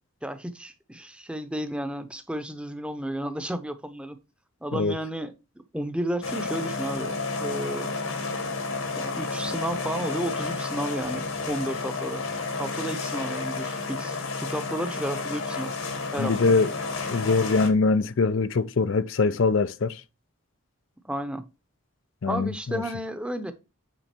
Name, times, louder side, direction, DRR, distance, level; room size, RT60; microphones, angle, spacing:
voice 1, 0.2-4.2 4.6-5.3 5.7-7.1 7.4-7.9 8.9-12.3 12.6-15.7 16.1-16.4 21.0-21.5 22.3-23.5, right 1 dB, 5° right, 0.8 m, -32 dB
sound 1, 6.2-17.7, left 3 dB, 75° left, 1.9 m, -31 dB
voice 2, 16.2-16.7 17.1-20.0 22.2-22.8, left 4 dB, 60° left, 0.5 m, -23 dB
9.1 x 3.9 x 4.4 m
head